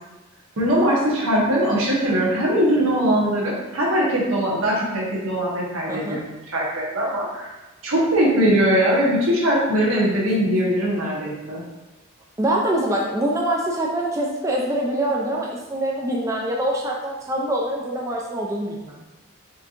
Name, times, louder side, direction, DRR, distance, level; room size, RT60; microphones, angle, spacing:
voice 1, 0.6-7.5 7.8-11.6, equal, 80° right, -5 dB, 1.1 m, -21 dB
voice 2, 12.4-19.0, right 1 dB, 15° right, -2 dB, 0.4 m, -24 dB
4.3 x 2.8 x 2.5 m, 1.1 s
head